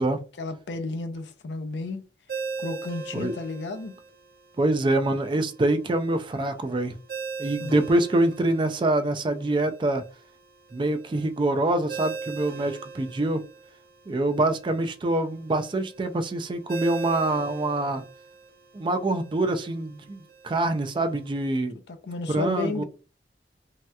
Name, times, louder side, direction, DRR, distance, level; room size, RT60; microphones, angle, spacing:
voice 1, 0.4-2.0 2.6-3.9 7.6-7.8 21.9-22.8, left 3 dB, 75° left, 0.5 m, -32 dB
Ringtone, 2.3-21.4, right 5 dB, 55° right, 0.8 m, -41 dB
voice 2, 4.6-6.9 7.4-10.0 10.7-13.4 14.1-18.0 18.7-21.7 22.3-22.8, right 2 dB, 25° right, 0.3 m, -25 dB
3.2 x 2.8 x 2.2 m
head